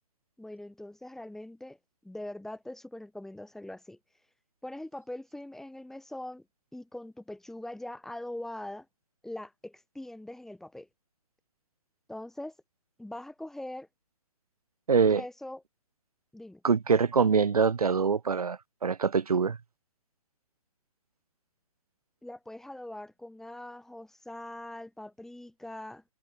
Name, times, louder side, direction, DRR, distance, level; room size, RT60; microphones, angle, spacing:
voice 1, 0.4-1.8 2.0-4.0 4.6-6.4 6.7-8.9 9.2-10.9 12.1-12.5 13.0-13.9 15.1-15.6 16.3-16.6 22.2-26.0, left 1 dB, ahead, 1.8 m, -42 dB
voice 2, 14.9-15.2 16.6-19.6, right 5 dB, 85° right, 1.0 m, -24 dB
hypercardioid pair, 135°, 19 cm